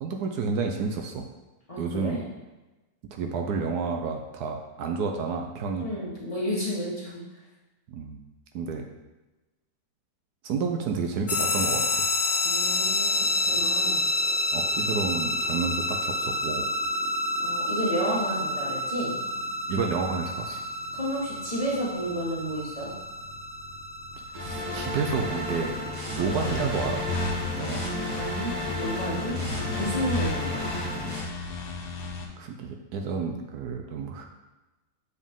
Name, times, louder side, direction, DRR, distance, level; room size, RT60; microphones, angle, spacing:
voice 1, 0.0-1.3 1.8-2.2 3.1-5.9 7.9-8.2 8.5-8.8 10.4-12.1 14.5-16.6 19.7-20.6 24.3-25.7 26.1-27.0 27.6-27.8 29.4-29.7 32.4-34.3, right 5 dB, 75° right, 3 dB, 1.1 m, -30 dB
voice 2, 1.7-2.3 5.8-7.2 12.4-13.1 13.5-14.1 17.4-19.1 20.9-22.9 27.8-29.3 29.7-30.6, equal, 20° left, -6 dB, 1.4 m, -31 dB
sound 1, 11.3-26.7, left 2 dB, 50° left, 0.5 m, -29 dB
sound 2, 24.3-31.2, left 1 dB, 30° right, 1.0 m, -33 dB
sound 3, 26.2-32.2, left 3 dB, 75° left, 1.4 m, -33 dB
7.2 x 4.1 x 3.6 m, 1.1 s
omnidirectional pair, 1.8 m